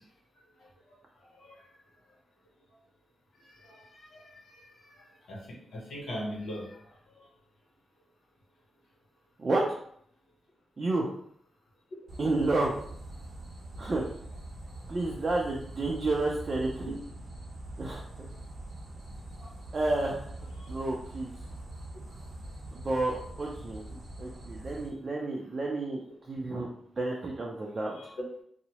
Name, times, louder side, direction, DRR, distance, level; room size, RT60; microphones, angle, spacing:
voice 1, 3.5-6.8 7.2-7.3 16.8-16.9 18.1-18.2 19.4-19.5 20.6-20.8 27.9-28.3, equal, 80° left, -2 dB, 0.8 m, -41 dB
voice 2, 9.4-9.7 10.8-11.1 12.2-12.7 13.8-14.1 14.9-17.0 17.8-18.3 19.7-20.2 20.7-21.3 22.8-23.8 24.2-26.0 26.3-26.7 27.0-28.0, right 2 dB, 40° right, -2 dB, 0.4 m, -30 dB
sound 1, 12.1-24.9, right 1 dB, 80° right, 0.7 m, -43 dB
2.8 x 2.0 x 2.9 m, 0.66 s
cardioid pair, 90°, 0 cm